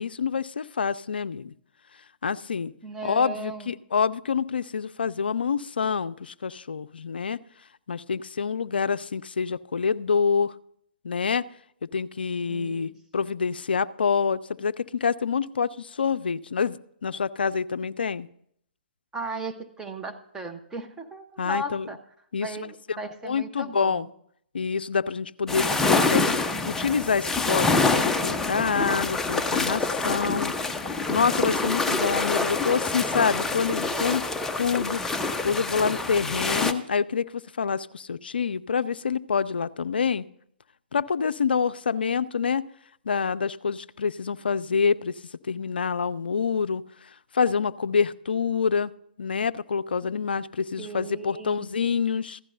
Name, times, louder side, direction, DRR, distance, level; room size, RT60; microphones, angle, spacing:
voice 1, 0.0-1.5 2.2-2.7 3.0-7.4 7.9-10.5 11.0-11.4 11.8-18.3 21.4-21.9 22.3-23.0 23.2-24.1 24.5-26.2 26.6-30.5 30.8-34.2 34.6-35.0 35.4-40.2 40.9-42.6 43.1-45.1 45.5-46.8 47.3-48.9 49.2-52.4, left 6 dB, 70° left, 16 dB, 0.4 m, -27 dB
voice 2, 2.8-3.7 12.5-12.9 19.1-22.0 22.4-24.1 50.8-51.7, right 2 dB, 10° right, 3 dB, 0.8 m, -36 dB
sound 1, 25.5-36.7, left 3 dB, 5° left, 0.5 m, -26 dB
15.0 x 12.0 x 2.7 m, 0.70 s
figure-of-eight pair, 125°, 6 cm